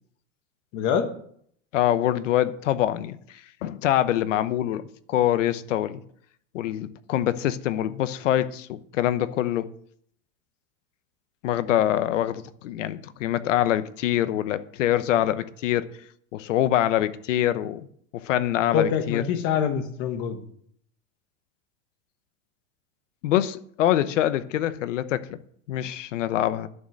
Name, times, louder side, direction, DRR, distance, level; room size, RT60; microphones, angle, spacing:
voice 1, 0.7-1.1 18.7-20.4, left 7 dB, 30° left, 1.2 m, -25 dB
voice 2, 1.7-3.2 3.6-6.0 6.5-9.7 11.4-15.9 16.3-17.9 18.1-19.2 23.2-25.4 25.7-26.7, left 12 dB, 70° left, 1.0 m, -24 dB
11.0 x 6.5 x 7.8 m
supercardioid pair, 180°, 39 cm